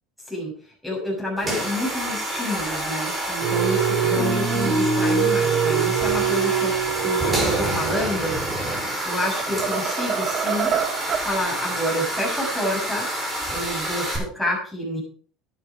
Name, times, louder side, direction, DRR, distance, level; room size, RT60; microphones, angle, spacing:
voice 1, 0.8-6.7 7.0-8.4 9.0-10.7 11.2-13.1 13.5-15.0, left 1 dB, ahead, -2 dB, 6.6 m, -29 dB
sound 1, 1.4-14.2, right 1 dB, 15° right, 6.4 m, -28 dB
sound 2, 3.4-8.1, right 6 dB, 65° right, 4.9 m, -23 dB
sound 3, 8.4-8.8 9.2-11.3, right 8 dB, 45° right, 1.5 m, -27 dB
11.0 x 11.0 x 4.9 m, 0.43 s
supercardioid pair, 115°, 0 cm